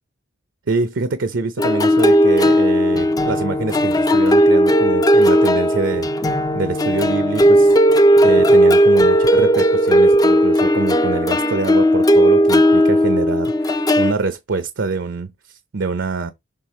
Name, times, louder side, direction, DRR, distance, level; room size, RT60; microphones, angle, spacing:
voice 1, 0.7-6.1 6.5-7.8 8.2-16.3, right 3 dB, 70° right, 0.6 m, -25 dB
sound 1, 1.6-14.1, equal, 20° left, 0.5 m, -15 dB
6.7 x 3.5 x 4.2 m
head